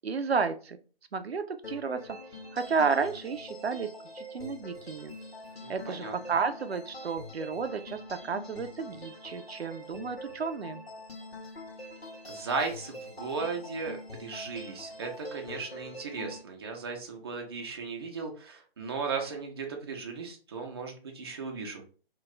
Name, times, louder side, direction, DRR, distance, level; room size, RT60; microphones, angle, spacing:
voice 1, 0.0-0.8 1.1-2.2 2.5-5.1 5.7-10.8, right 5 dB, 90° right, 9 dB, 0.5 m, -32 dB
sound 1, 1.6-16.4, left 1 dB, 80° left, 1.0 m, -44 dB
voice 2, 5.6-6.1 12.3-21.9, right 4 dB, 25° right, 2 dB, 0.5 m, -36 dB
2.3 x 2.3 x 3.9 m, 0.38 s
figure-of-eight pair, 140°, 30 cm